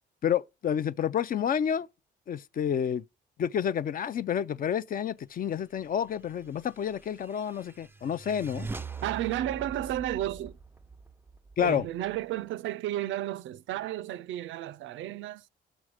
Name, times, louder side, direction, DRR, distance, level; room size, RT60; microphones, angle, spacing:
voice 1, 0.2-1.9 2.3-3.0 3.4-8.7 11.6-11.8, left 8 dB, 45° left, 0.4 m, -29 dB
sound 1, 6.6-12.2, right 4 dB, 10° right, 0.4 m, -43 dB
voice 2, 9.0-10.6 11.6-15.5, right 13 dB, 75° right, 0.4 m, -33 dB
6.2 x 4.4 x 4.9 m
cardioid pair, 90°, 20 cm